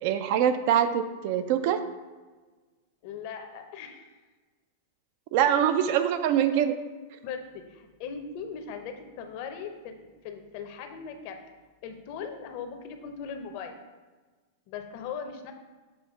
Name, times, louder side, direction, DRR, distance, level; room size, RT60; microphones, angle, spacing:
voice 1, 0.0-1.8 5.3-6.7, right 9 dB, 55° right, 10 dB, 0.5 m, -24 dB
voice 2, 3.0-4.2 6.5-6.6 7.2-11.4 11.8-13.8 14.7-15.5, left 6 dB, 55° left, 6 dB, 0.8 m, -39 dB
7.2 x 2.9 x 5.2 m, 1.3 s
hypercardioid pair, 125°, 0 cm